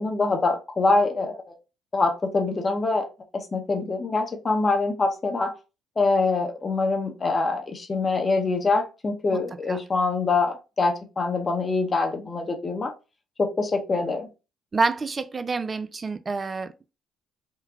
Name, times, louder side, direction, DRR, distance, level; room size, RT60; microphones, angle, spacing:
voice 1, 0.0-1.6 1.9-3.1 3.3-5.6 6.0-12.9 13.4-14.3, left 3 dB, 35° left, 0.9 m, -24 dB
voice 2, 14.7-16.9, right 3 dB, 35° right, 0.4 m, -27 dB
3.8 x 2.2 x 2.7 m
hypercardioid pair, 55°, 0 cm